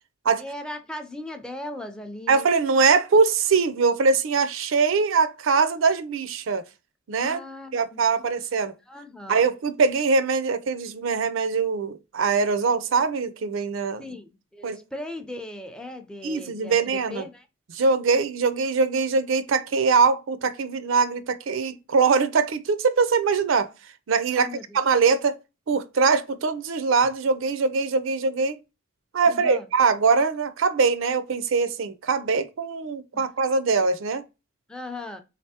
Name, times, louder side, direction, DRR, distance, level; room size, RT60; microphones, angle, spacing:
voice 1, 0.4-2.4 7.2-8.0 8.9-9.4 14.0-17.5 24.3-24.8 29.3-29.6 33.1-33.2 34.7-35.2, left 1 dB, 5° left, 0.4 m, -38 dB
voice 2, 2.3-6.6 7.1-7.4 7.7-8.7 9.3-14.0 14.6-14.8 16.2-17.3 17.7-23.7 24.1-24.5 24.7-25.4 25.7-28.6 29.1-34.2, right 4 dB, 70° right, 0.4 m, -22 dB
3.9 x 3.3 x 2.8 m
head